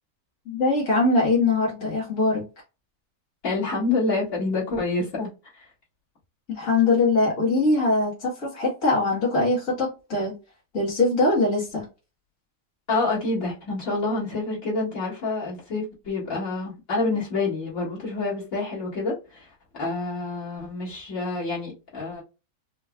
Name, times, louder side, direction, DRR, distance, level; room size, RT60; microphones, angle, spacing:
voice 1, 0.5-2.4 6.5-10.3 10.7-11.9, left 3 dB, 65° left, 2.1 m, -22 dB
voice 2, 3.4-5.7 12.9-19.5 19.8-22.2, left 3 dB, 80° left, 2.2 m, -27 dB
5.3 x 2.0 x 2.3 m
omnidirectional pair, 1.4 m